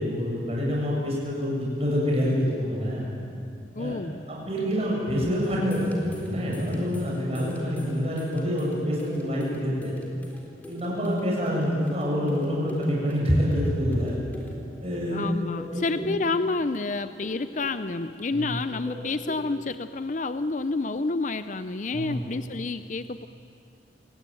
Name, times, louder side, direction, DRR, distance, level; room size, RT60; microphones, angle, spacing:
voice 1, 0.0-3.1 3.8-3.9 4.3-9.9 10.7-14.2 14.8-15.2 15.7-16.1 18.3-18.6 21.9-22.2, equal, 35° right, -3 dB, 7.9 m, -26 dB
voice 2, 3.8-4.2 15.1-23.3, left 3 dB, 40° left, 11 dB, 0.5 m, -29 dB
sound 1, 5.4-15.0 15.3-16.6 16.9-18.3 18.6-19.9 20.2-20.4, equal, 10° left, 3.5 m, -43 dB
28.0 x 18.5 x 9.2 m, 2.6 s
head